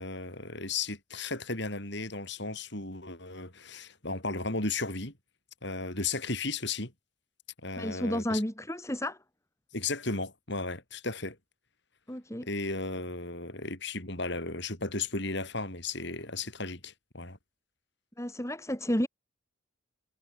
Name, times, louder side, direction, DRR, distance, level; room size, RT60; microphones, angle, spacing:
voice 1, 0.0-5.1 5.6-6.9 7.6-8.4 9.7-11.4 12.4-17.4, left 3 dB, 55° left, 6.4 m, -35 dB
voice 2, 7.8-9.2 12.1-12.5 18.2-19.1, equal, 15° left, 2.9 m, -31 dB
head